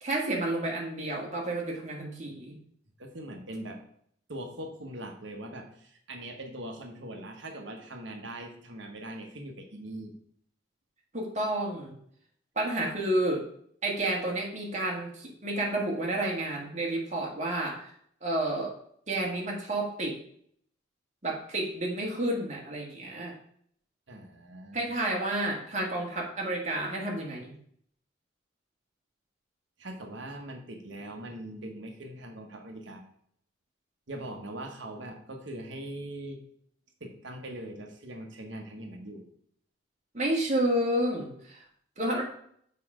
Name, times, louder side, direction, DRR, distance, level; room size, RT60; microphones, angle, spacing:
voice 1, 0.0-2.6 11.1-11.9 12.6-13.4 13.8-17.9 18.2-18.7 19.1-20.2 21.2-23.3 24.7-27.5 40.1-41.7 42.0-42.2, right 1 dB, 35° right, -1 dB, 1.7 m, -30 dB
voice 2, 3.0-3.8 4.3-10.1 24.1-24.9 29.8-33.0 34.1-36.4 37.0-39.3, right 1 dB, 65° right, 4 dB, 1.1 m, -41 dB
6.8 x 4.7 x 4.9 m, 0.66 s
head